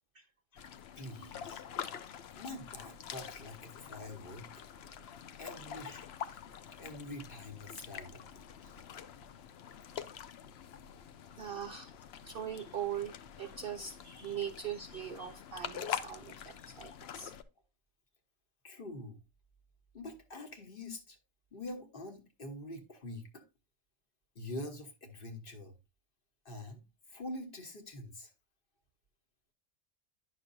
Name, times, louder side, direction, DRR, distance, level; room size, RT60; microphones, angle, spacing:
sound 1, 0.6-17.4, left 8 dB, 60° left, 0.7 m, -45 dB
voice 1, 1.0-1.6 2.3-4.5 5.4-6.1 6.8-8.2 8.6-8.8 13.8-13.9 18.6-19.2 19.9-21.2 21.5-23.4 24.3-25.7 26.4-26.8 27.1-28.3, left 1 dB, 40° left, 1.3 m, -45 dB
voice 2, 11.4-11.9 12.2-17.3, right 9 dB, 60° right, 0.6 m, -41 dB
9.9 x 6.2 x 2.6 m
omnidirectional pair, 1.4 m